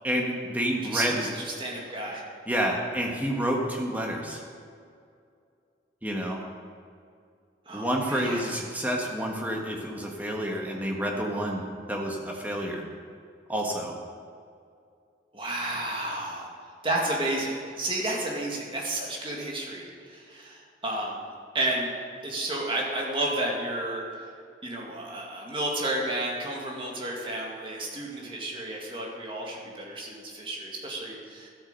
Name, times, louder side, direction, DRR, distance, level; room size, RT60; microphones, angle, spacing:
voice 1, 0.0-1.3 2.5-4.4 6.0-6.4 7.7-11.6 11.9-12.8 13.5-13.9, equal, 10° right, 0 dB, 1.5 m, -29 dB
voice 2, 0.8-2.2 7.7-8.4 15.3-16.5 16.8-21.2 21.5-21.9 22.2-24.0 24.6-31.5, right 1 dB, 30° right, -2 dB, 2.2 m, -31 dB
12.5 x 8.6 x 6.8 m, 2.3 s
head